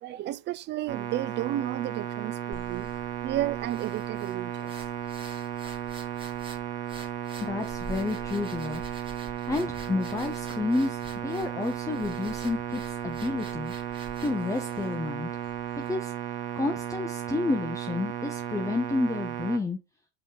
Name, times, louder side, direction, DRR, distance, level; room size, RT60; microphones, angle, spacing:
voice 1, 0.0-2.9 3.2-4.7, right 13 dB, 30° right, 0.4 m, -32 dB
sound 1, 0.9-19.6, right 10 dB, 60° right, 1.3 m, -35 dB
sound 2, 2.5-15.9, right 3 dB, 15° right, 1.8 m, -47 dB
voice 2, 7.4-8.8 9.5-13.7 14.2-15.3 15.8-16.1 16.6-19.8, left 3 dB, 10° left, 0.7 m, -30 dB
5.4 x 4.8 x 3.7 m
supercardioid pair, 115°, 36 cm